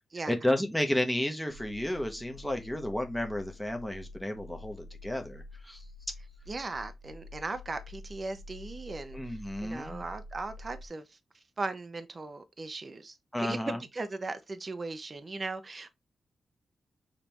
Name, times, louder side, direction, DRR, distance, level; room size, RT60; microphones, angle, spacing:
voice 1, 0.3-5.8 9.1-10.0 13.3-13.8, left 1 dB, ahead, 0.9 m, -32 dB
sound 1, 1.5-10.9, left 2 dB, 80° right, 0.8 m, -48 dB
voice 2, 6.5-11.2 11.6-16.0, right 3 dB, 40° right, 0.7 m, -38 dB
5.2 x 3.3 x 2.9 m
cardioid pair, 80°, 0 cm